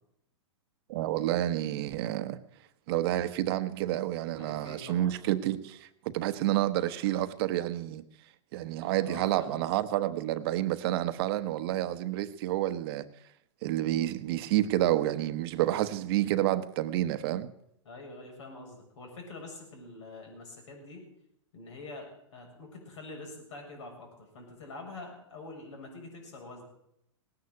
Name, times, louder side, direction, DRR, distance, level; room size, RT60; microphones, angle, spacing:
voice 1, 0.9-2.4 2.9-5.8 6.0-8.0 8.5-13.0 13.6-17.5, right 14 dB, 50° right, 1.0 m, -29 dB
voice 2, 4.4-5.1 9.0-9.8 17.8-21.1 21.5-26.6, left 2 dB, 70° left, 7.2 m, -45 dB
18.0 x 9.7 x 8.0 m
hypercardioid pair, 130°, 16 cm